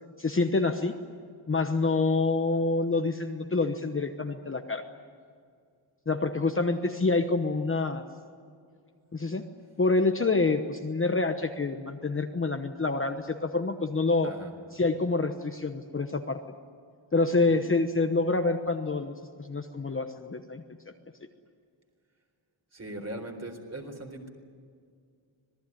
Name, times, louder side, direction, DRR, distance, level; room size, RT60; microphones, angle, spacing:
voice 1, 0.2-0.9 1.5-4.8 6.1-8.0 9.1-9.4 9.8-14.3 14.7-16.4 17.1-20.6, left 3 dB, 25° left, 5 dB, 1.0 m, -27 dB
voice 2, 17.3-17.7 22.7-24.3, right 1 dB, 30° right, 4 dB, 4.0 m, -40 dB
26.0 x 19.5 x 9.9 m, 2.2 s
wide cardioid pair, 165°, 49 cm